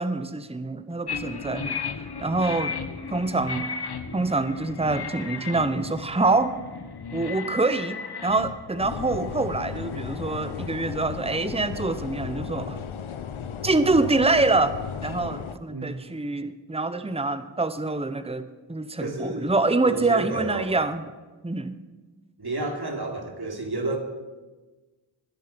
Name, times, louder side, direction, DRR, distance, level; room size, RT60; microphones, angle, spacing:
voice 1, 0.0-1.8 2.2-2.8 3.1-3.7 4.1-6.5 7.1-12.8 13.6-21.0 21.4-21.7, right 3 dB, 15° right, 12 dB, 1.0 m, -25 dB
sound 1, 1.1-11.0, left 5 dB, 55° left, 1.3 m, -36 dB
sound 2, 8.8-15.6, left 7 dB, 90° left, 0.9 m, -35 dB
voice 2, 15.7-16.0 19.0-19.6 19.8-20.8 22.4-24.0, right 2 dB, 55° right, 2 dB, 3.3 m, -31 dB
20.5 x 10.5 x 5.3 m, 1.3 s
cardioid pair, 45°, 47 cm